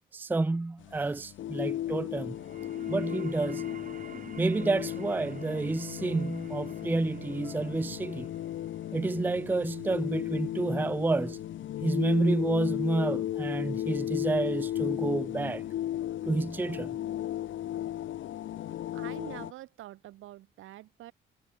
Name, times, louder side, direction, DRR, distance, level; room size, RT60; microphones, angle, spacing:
voice 1, 0.1-2.4 2.9-3.7 4.4-8.3 8.9-11.4 11.8-15.6 16.2-17.0, right 2 dB, 10° right, 0.4 m, -29 dB
sound 1, 0.8-19.5, left 12 dB, 75° left, 2.4 m, -35 dB
sound 2, 2.2-13.3, right 6 dB, 40° right, 3.2 m, -52 dB
voice 2, 18.9-21.1, right 15 dB, 85° right, 7.9 m, -45 dB
cardioid pair, 90°, 20 cm